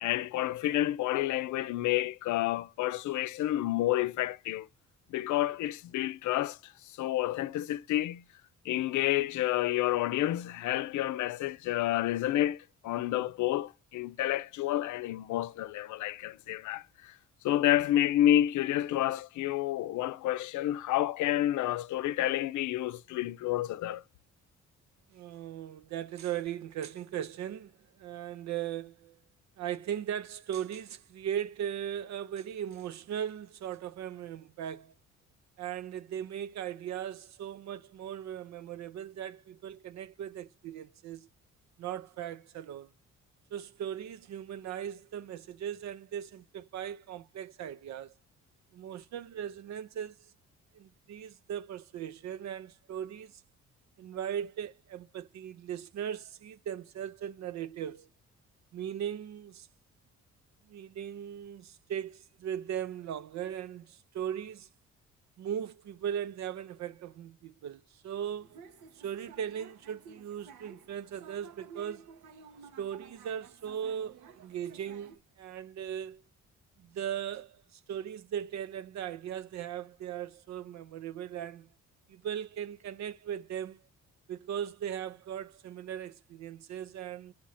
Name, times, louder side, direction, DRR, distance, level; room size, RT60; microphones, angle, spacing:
voice 1, 0.0-4.7 5.1-6.7 7.0-8.2 8.6-17.1 17.4-24.0, left 13 dB, 75° left, 0.5 m, -29 dB
voice 2, 25.1-27.7 28.0-29.2 29.6-34.9 35.6-41.3 41.8-42.9 43.5-48.1 48.7-50.3 50.7-53.4 54.0-58.1 58.7-59.7 60.7-64.7 65.4-68.6 68.9-72.1 72.8-76.2 76.8-81.7 82.1-83.8 84.3-87.3, right 9 dB, 65° right, 0.5 m, -38 dB
sound 1, 68.4-75.2, right 6 dB, 85° right, 1.0 m, -53 dB
6.2 x 3.0 x 5.6 m
cardioid pair, 90°, 30 cm